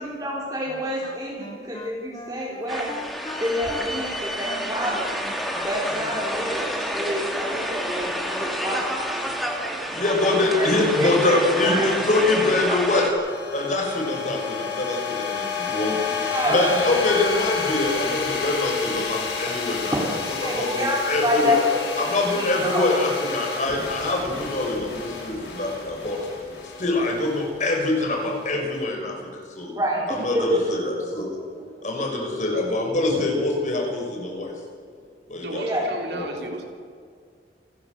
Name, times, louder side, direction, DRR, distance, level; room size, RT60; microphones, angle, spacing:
voice 1, 0.0-3.0 3.4-5.2 5.6-9.0 10.6-10.7 11.0-11.9 16.2-16.7 19.7-20.0 20.3-22.1 22.3-22.9 29.7-30.7 35.5-35.9, left 1 dB, 20° right, -5 dB, 3.7 m, -27 dB
Wind instrument woodwind instrument, 0.7-6.3, left 2 dB, 25° left, 1.9 m, -40 dB
sound 1, 2.7-13.1, equal, ahead, 2.5 m, -29 dB
voice 2, 9.9-13.1 13.5-16.0 16.4-19.9 20.4-21.6 22.0-26.2 26.8-29.7 30.1-31.3 31.8-34.5 35.3-36.3, left 2 dB, 45° left, 0 dB, 6.1 m, -24 dB
sound 2, 10.4-28.7, left 6 dB, 70° left, 6.4 m, -31 dB
voice 3, 35.4-36.7, right 2 dB, 70° right, 3 dB, 3.6 m, -34 dB
29.5 x 12.5 x 7.9 m, 2.1 s
head